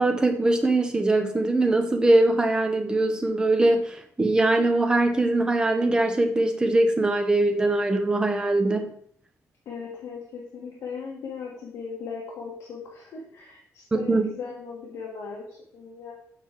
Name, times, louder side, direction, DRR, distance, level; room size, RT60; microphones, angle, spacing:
voice 1, 0.0-8.9 13.9-14.3, right 2 dB, 15° right, 5 dB, 0.7 m, -22 dB
voice 2, 9.6-16.1, left 5 dB, 75° left, -3 dB, 1.3 m, -38 dB
7.3 x 4.5 x 3.7 m, 0.64 s
wide cardioid pair, 175°, 6 cm